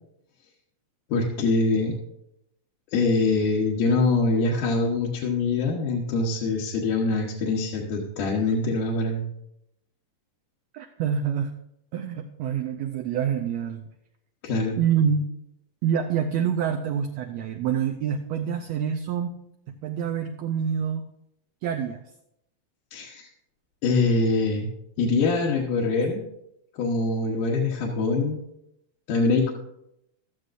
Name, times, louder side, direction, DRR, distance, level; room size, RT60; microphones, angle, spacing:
voice 1, 1.1-1.9 2.9-9.2 14.4-14.8 22.9-23.3 23.8-24.7 25.0-26.2 26.7-28.4 29.1-29.5, left 3 dB, 80° left, -4 dB, 2.8 m, -24 dB
voice 2, 10.7-11.5 11.9-13.8 14.8-15.3 15.8-19.4 19.7-21.1 21.6-22.0, right 8 dB, 75° right, 4 dB, 1.6 m, -26 dB
16.5 x 12.5 x 2.6 m, 0.81 s
omnidirectional pair, 3.6 m